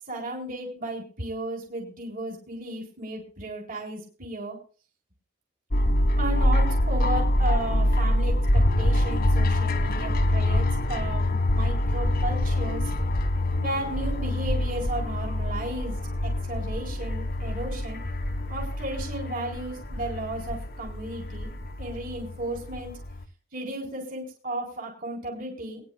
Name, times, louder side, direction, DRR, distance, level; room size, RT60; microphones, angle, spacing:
voice 1, 0.1-4.6 6.2-12.9 13.6-15.9 16.2-18.0 18.5-21.5 21.8-22.9 23.5-25.8, right 1 dB, 45° right, -1 dB, 4.1 m, -34 dB
sound 1, 5.7-23.2, left 1 dB, 50° left, 1.2 m, -25 dB
22.5 x 10.5 x 2.2 m, 0.36 s
head